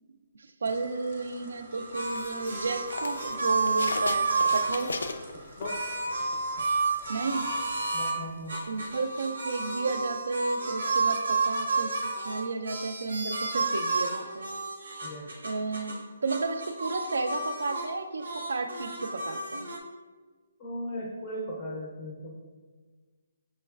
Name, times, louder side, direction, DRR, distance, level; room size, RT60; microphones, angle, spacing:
sound 1, 0.6-7.9, right 1 dB, 30° right, 0.6 m, -50 dB
voice 1, 0.6-5.0 7.1-7.5 8.7-14.5 15.4-19.7, right 3 dB, 75° right, 8 dB, 0.3 m, -32 dB
sound 2, 1.7-5.1 5.6-8.2 8.5-16.0 16.3-17.9 18.2-19.8, right 3 dB, 90° right, 0.8 m, -31 dB
sound 3, 2.0-6.2 6.6-9.0, left 3 dB, 85° left, 0.3 m, -38 dB
voice 2, 5.6-6.0 7.9-8.6 15.0-15.3 20.6-22.3, equal, 15° left, -3 dB, 0.4 m, -37 dB
6.2 x 3.1 x 2.3 m, 1.4 s
hypercardioid pair, 180°, 0 cm